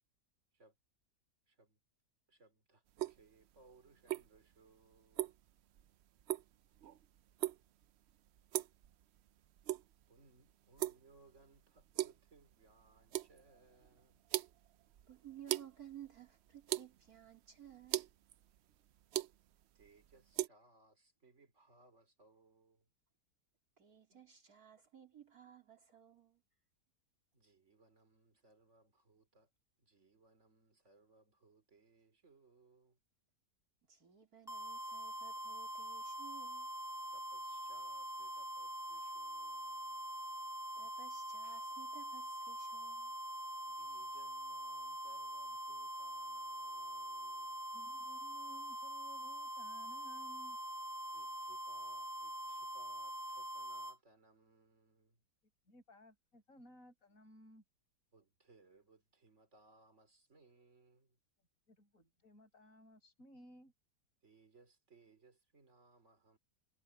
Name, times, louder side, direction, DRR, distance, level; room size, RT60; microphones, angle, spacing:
voice 1, 1.5-1.8 2.3-5.4 10.1-14.2 19.7-22.9 24.1-24.3 25.9-26.0 27.3-29.5 29.8-33.0 37.1-40.0 43.7-47.7 51.1-55.2 58.1-61.2 64.2-66.4, right 3 dB, 45° right, 3.9 m, -67 dB
sound 1, 2.9-20.5, right 13 dB, 90° right, 0.5 m, -43 dB
voice 2, 15.1-18.1 23.8-26.4 33.9-36.7 40.8-43.2, right 10 dB, 60° right, 3.9 m, -57 dB
sound 2, 34.5-54.0, right 1 dB, ahead, 1.6 m, -44 dB
voice 3, 47.7-50.6 55.7-57.6 61.7-63.7, equal, 55° left, 6.6 m, -60 dB
omnidirectional pair, 1.8 m